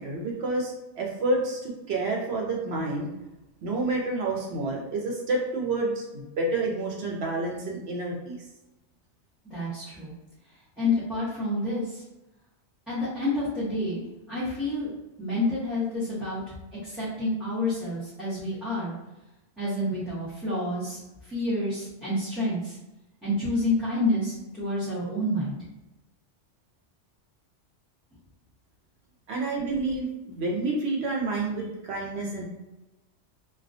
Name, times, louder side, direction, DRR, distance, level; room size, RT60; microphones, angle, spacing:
voice 1, 0.0-3.1 3.6-8.4 29.3-32.4, right 2 dB, 65° right, -1 dB, 0.9 m, -29 dB
voice 2, 9.5-10.1 10.8-12.0 12.9-14.0 14.3-14.9 15.2-16.4 16.8-18.9 19.6-22.8 23.2-25.6, left 1 dB, ahead, -13 dB, 0.7 m, -28 dB
2.3 x 2.1 x 2.5 m, 0.98 s
omnidirectional pair, 1.2 m